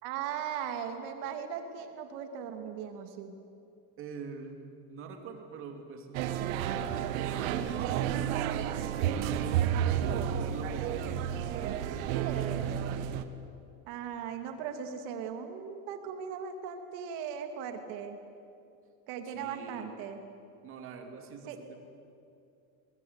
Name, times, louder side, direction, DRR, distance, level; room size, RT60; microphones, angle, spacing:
voice 1, 0.0-3.3 10.0-10.4 10.9-11.0 12.1-12.8 13.9-18.2 19.1-20.2 21.5-21.6, right 7 dB, 50° right, 6 dB, 2.7 m, -38 dB
voice 2, 4.0-9.4 10.0-11.8 19.2-19.9 20.6-21.9, right 5 dB, 30° right, 4 dB, 2.7 m, -44 dB
sound 1, 6.1-13.2, right 10 dB, 75° right, 1.6 m, -31 dB
22.0 x 21.5 x 9.7 m, 2.5 s
cardioid pair, 180°, 41 cm